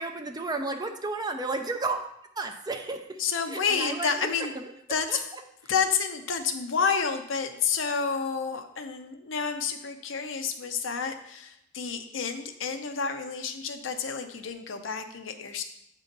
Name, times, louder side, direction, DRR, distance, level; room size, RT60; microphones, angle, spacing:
voice 1, 0.0-2.0 2.4-3.0 3.5-4.1, right 3 dB, 20° right, 5 dB, 0.5 m, -32 dB
voice 2, 3.2-4.5 4.9-5.2 5.7-15.6, left 6 dB, 85° left, 6 dB, 0.6 m, -29 dB
8.0 x 2.8 x 5.2 m, 0.77 s
head